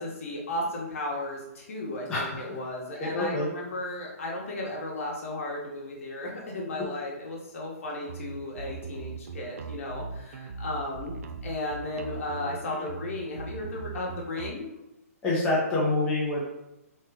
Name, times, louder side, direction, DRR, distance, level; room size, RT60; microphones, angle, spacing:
voice 1, 0.0-11.1 11.4-14.7, left 1 dB, 55° left, -2 dB, 1.0 m, -35 dB
voice 2, 2.1-2.6 3.0-3.5 15.2-16.5, left 2 dB, 10° left, -7 dB, 0.6 m, -27 dB
sound 1, 8.1-14.5, right 5 dB, 65° right, 0.3 m, -39 dB
3.1 x 2.1 x 3.4 m, 0.92 s
hypercardioid pair, 165°, 8 cm